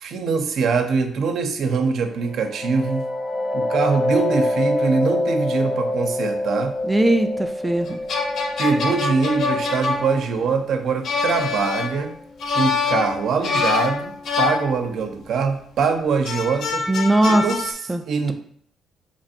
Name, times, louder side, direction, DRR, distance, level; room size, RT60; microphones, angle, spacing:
voice 1, 0.0-3.1 3.5-6.8 8.6-12.1 12.5-16.8 17.2-17.7 18.1-18.3, right 5 dB, 70° right, 6 dB, 0.5 m, -23 dB
sound 1, 2.2-11.7, left 1 dB, 35° left, 0.8 m, -26 dB
voice 2, 6.8-8.0 16.9-17.4 17.9-18.3, right 1 dB, 10° right, 6 dB, 0.3 m, -20 dB
sound 2, 7.9-15.3 16.3-17.7, left 4 dB, 65° left, 0.6 m, -25 dB
2.9 x 2.5 x 4.1 m, 0.64 s
cardioid pair, 90°, 0 cm